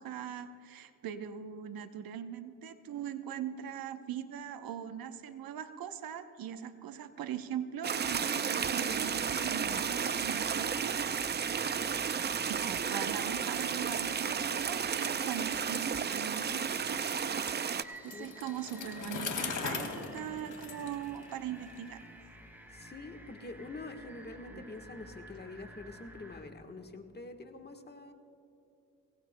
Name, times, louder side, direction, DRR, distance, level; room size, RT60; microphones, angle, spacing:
voice 1, 0.0-11.5 12.5-17.0 18.0-22.0 24.5-24.6, right 9 dB, 70° right, 10 dB, 0.8 m, -41 dB
sound 1, 7.8-17.8, right 7 dB, 30° right, 0.5 m, -33 dB
sound 2, 8.9-26.4, equal, 5° right, 3.3 m, -52 dB
Bicycle, 17.9-21.8, left 5 dB, 60° left, 2.2 m, -39 dB
voice 2, 22.7-28.1, left 2 dB, 25° left, 5 dB, 1.3 m, -46 dB
24.0 x 18.0 x 2.2 m, 2.6 s
cardioid pair, 75°, 36 cm